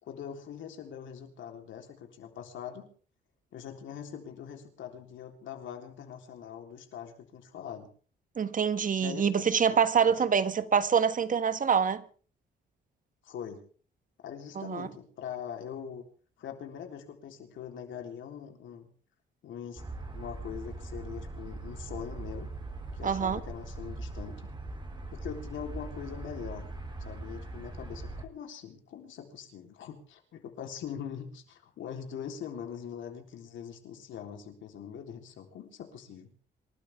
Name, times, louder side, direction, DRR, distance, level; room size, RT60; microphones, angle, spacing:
voice 1, 0.0-2.9 3.5-7.9 9.0-9.7 10.0-10.2 13.2-13.6 14.2-16.1 16.4-18.9 19.4-19.9 20.1-22.5 22.9-24.5 25.1-26.7 27.0-36.3, left 8 dB, 75° left, 3.7 m, -42 dB
voice 2, 8.4-12.0 14.5-14.9 23.0-23.4, right 7 dB, 40° right, 1.4 m, -26 dB
sound 1, 19.8-28.3, right 2 dB, 25° right, 3.5 m, -41 dB
27.0 x 12.5 x 3.6 m
cardioid pair, 90°, 20 cm